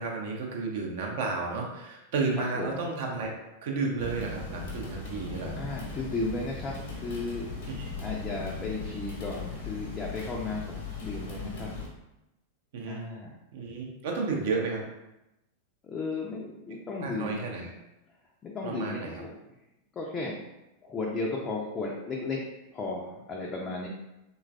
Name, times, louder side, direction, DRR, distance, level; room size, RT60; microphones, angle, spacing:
voice 1, 0.0-3.3 3.6-5.6 7.7-7.8 12.7-13.0 13.5-14.8 17.0-17.7 18.6-19.2, right 4 dB, 55° right, 0 dB, 0.5 m, -32 dB
sound 1, 4.0-11.9, left 3 dB, 55° left, 0.7 m, -38 dB
voice 2, 5.6-7.7 8.0-11.7 12.9-13.4 15.8-17.4 18.4-19.3 19.9-20.4 20.8-22.4 22.7-23.9, left 3 dB, 25° left, -2 dB, 0.4 m, -34 dB
3.1 x 2.3 x 2.4 m, 0.93 s
figure-of-eight pair, 90°, 0 cm